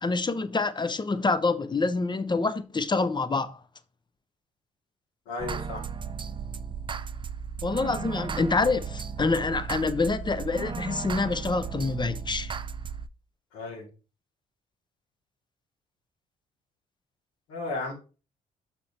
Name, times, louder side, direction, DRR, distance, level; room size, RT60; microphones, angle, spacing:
voice 1, 0.0-3.6 7.6-12.5, left 3 dB, 25° left, 0.7 m, -26 dB
voice 2, 5.3-5.8 13.5-13.9 17.5-17.9, left 3 dB, 80° left, 2.2 m, -34 dB
sound 1, 5.4-13.1, right 6 dB, 25° right, 0.4 m, -35 dB
6.5 x 4.4 x 4.3 m
hypercardioid pair, 50°, 19 cm